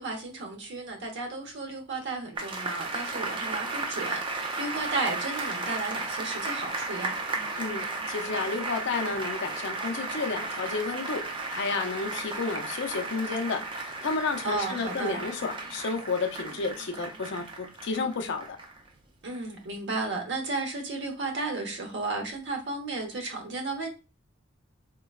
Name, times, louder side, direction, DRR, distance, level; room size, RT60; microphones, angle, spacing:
voice 1, 0.0-7.1 14.4-15.2 19.2-23.9, right 3 dB, 60° right, 0.8 m, -33 dB
sound 1, 2.4-18.9 19.3-19.4, right 3 dB, 25° right, 0.4 m, -34 dB
voice 2, 7.6-13.6 14.0-18.6, left 4 dB, 60° left, 0.5 m, -31 dB
3.7 x 2.2 x 2.3 m
head